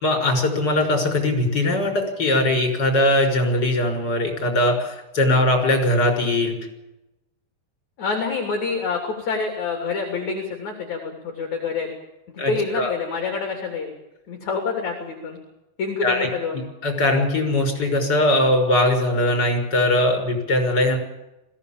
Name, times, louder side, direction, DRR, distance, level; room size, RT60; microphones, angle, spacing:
voice 1, 0.0-6.5 12.4-12.9 16.0-16.3 16.8-21.0, left 1 dB, 20° left, 4 dB, 6.1 m, -20 dB
voice 2, 8.0-11.9 12.5-13.9 14.3-15.4 15.8-16.6, left 4 dB, 40° left, 3 dB, 3.9 m, -27 dB
21.5 x 16.5 x 8.9 m, 0.95 s
omnidirectional pair, 5.5 m